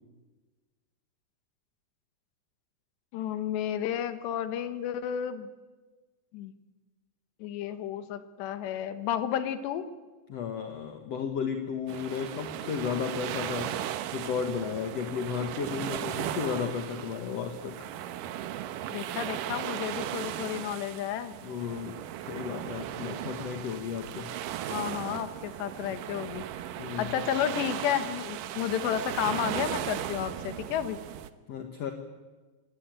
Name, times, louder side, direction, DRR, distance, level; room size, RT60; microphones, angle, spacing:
voice 1, 3.1-5.5 6.3-6.5 7.4-9.9 18.9-21.4 24.7-26.5 27.0-31.0, left 10 dB, 85° left, 10 dB, 3.6 m, -32 dB
voice 2, 10.3-13.8 14.1-17.8 21.4-24.3 26.8-27.2 31.5-31.9, left 7 dB, 60° left, 5 dB, 1.8 m, -34 dB
sound 1, 11.9-31.3, right 11 dB, 70° right, 2.2 m, -37 dB
26.5 x 20.0 x 9.1 m, 1.3 s
omnidirectional pair, 4.8 m